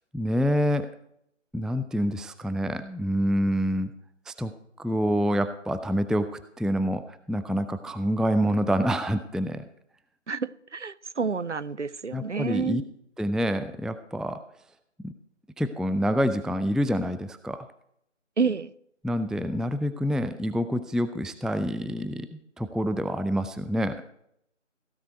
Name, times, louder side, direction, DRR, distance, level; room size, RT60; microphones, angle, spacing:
voice 1, 0.1-0.9 1.5-3.9 4.3-9.6 12.1-12.8 13.2-14.4 15.0-15.1 15.6-17.7 19.0-22.3 22.6-24.0, equal, ahead, 0.4 m, -27 dB
voice 2, 10.3-12.9 18.4-18.7, right 5 dB, 70° right, 0.7 m, -29 dB
16.5 x 9.4 x 4.6 m
figure-of-eight pair, 170°, 38 cm